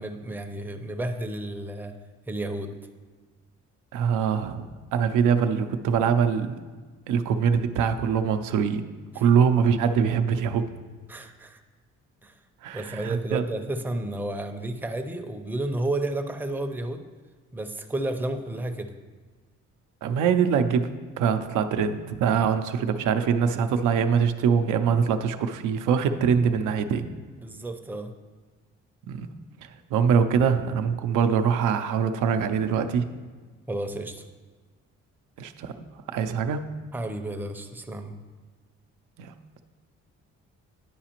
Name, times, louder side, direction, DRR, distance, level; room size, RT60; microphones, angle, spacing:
voice 1, 0.0-1.9 2.3-2.8 9.1-9.3 11.1-11.6 12.2-12.4 12.7-17.1 17.5-18.9 27.4-28.1 33.7-34.2 36.9-38.2, right 1 dB, 5° right, 5 dB, 0.5 m, -32 dB
voice 2, 3.9-6.6 7.1-8.8 9.2-10.6 12.6-13.4 20.0-20.9 21.2-27.1 29.1-29.3 29.9-33.1 35.4-35.7 36.1-36.6 39.2-39.3, right 7 dB, 85° right, 8 dB, 0.5 m, -23 dB
10.0 x 4.8 x 2.9 m, 1.4 s
cardioid pair, 90°, 30 cm